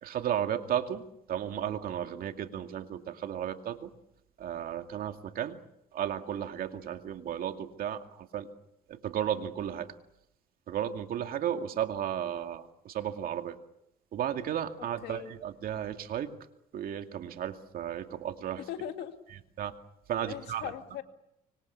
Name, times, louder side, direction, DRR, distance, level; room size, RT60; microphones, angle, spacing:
voice 1, 0.0-3.9 4.4-5.6 5.9-8.5 8.9-9.9 10.7-13.6 14.1-16.3 16.7-18.6 19.6-19.7 20.1-20.7, right 10 dB, 60° right, 7 dB, 2.3 m, -34 dB
voice 2, 18.7-19.2 20.2-21.0, left 10 dB, 80° left, 7 dB, 2.4 m, -39 dB
25.5 x 25.0 x 7.1 m, 0.81 s
cardioid pair, 110°, 17 cm